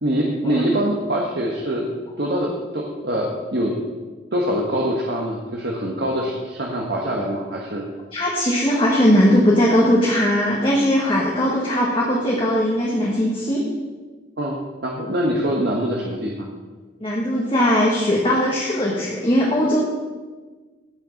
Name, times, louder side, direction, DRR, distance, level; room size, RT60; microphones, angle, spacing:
voice 1, 0.0-1.9 2.2-3.7 4.3-7.9 14.4-16.5, equal, 55° right, -1 dB, 1.3 m, -24 dB
voice 2, 8.1-13.6 17.0-19.8, equal, 25° left, -3 dB, 1.5 m, -19 dB
16.5 x 6.7 x 5.2 m, 1.4 s
head